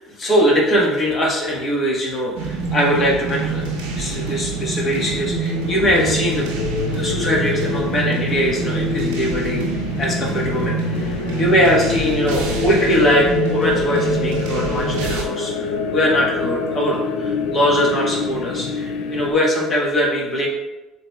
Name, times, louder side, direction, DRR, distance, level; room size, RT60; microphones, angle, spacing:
voice 1, 0.0-3.6 3.9-6.5 6.9-9.6 10.0-11.1 11.4-20.5, equal, 40° left, -2 dB, 1.5 m, -21 dB
sound 1, 2.4-15.2, right 4 dB, 85° right, 0.8 m, -26 dB
sound 2, 3.4-19.3, left 5 dB, 75° left, 0.5 m, -26 dB
7.4 x 3.0 x 2.4 m, 1.0 s
supercardioid pair, 85°, 0 cm